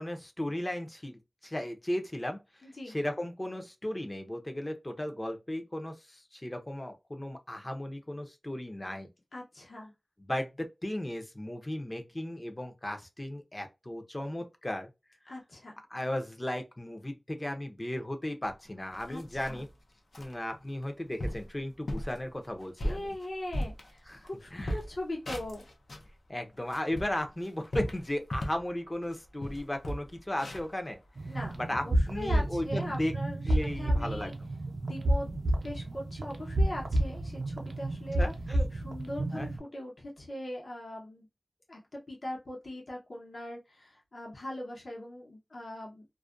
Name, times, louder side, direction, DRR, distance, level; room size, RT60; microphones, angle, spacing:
voice 1, 0.0-2.4 2.9-9.1 10.3-14.9 15.9-19.7 20.2-23.1 24.1-24.2 24.5-24.8 26.3-31.0 31.6-33.1 33.5-34.3 38.2-38.7 39.3-39.5, left 1 dB, 25° left, 0.5 m, -35 dB
voice 2, 2.6-3.0 9.3-9.9 15.3-15.8 19.1-19.6 22.8-25.6 31.2-31.5 31.8-34.3 34.8-35.3 35.6-38.2 38.7-41.3 41.7-46.1, left 1 dB, 65° left, 0.9 m, -40 dB
sound 1, 18.9-19.7 20.1-20.3 20.8-20.9 21.2-21.5 21.9-22.2 22.6-24.3 24.6-26.1 26.5-28.7 29.0-29.2 29.4-31.6, equal, 80° left, 0.5 m, -37 dB
sound 2, 31.2-39.6, right 1 dB, 85° right, 0.5 m, -30 dB
2.3 x 2.2 x 2.4 m
wide cardioid pair, 70°, 0 cm